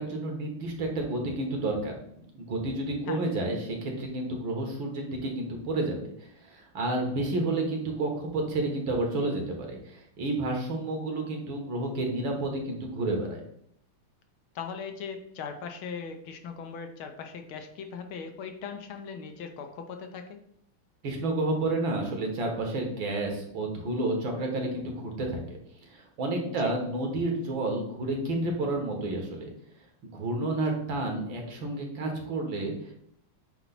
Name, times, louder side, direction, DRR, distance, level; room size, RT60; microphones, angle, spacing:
voice 1, 0.0-6.0 6.4-13.4 21.0-25.6 25.9-29.5 30.1-32.9, right 2 dB, 65° right, 2 dB, 2.1 m, -30 dB
voice 2, 14.5-20.4 26.4-26.7, left 6 dB, 75° left, 6 dB, 1.6 m, -39 dB
8.3 x 3.0 x 5.8 m, 0.73 s
omnidirectional pair, 2.3 m